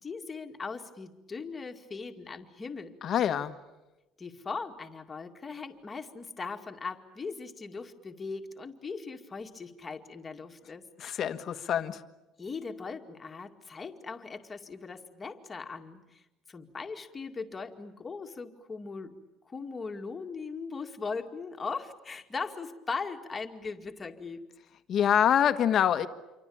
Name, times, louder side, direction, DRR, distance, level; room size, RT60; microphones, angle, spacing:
voice 1, 0.0-3.0 4.2-10.8 12.4-16.2 16.5-19.1 19.5-24.5, left 4 dB, 20° left, 2.2 m, -39 dB
voice 2, 3.0-3.6 11.0-12.0 24.9-26.1, left 9 dB, 40° left, 1.5 m, -25 dB
28.0 x 24.5 x 8.8 m
cardioid pair, 160°, 0 cm